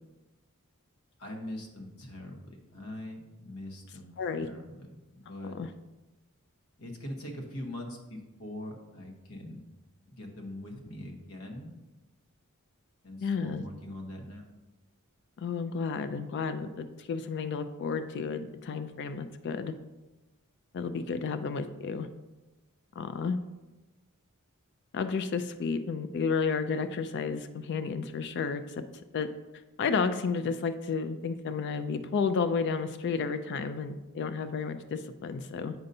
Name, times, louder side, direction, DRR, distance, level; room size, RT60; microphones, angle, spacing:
voice 1, 1.2-4.1 4.4-5.6 6.8-9.6 10.1-11.7 13.0-14.4, left 1 dB, 75° left, 2 dB, 1.1 m, -42 dB
voice 2, 4.2-4.5 5.5-5.7 13.2-13.6 15.4-19.7 20.7-22.1 23.0-23.4 24.9-28.8 29.1-29.3 29.8-35.7, left 5 dB, 50° left, 10 dB, 0.3 m, -32 dB
7.8 x 5.3 x 2.7 m, 1.1 s
head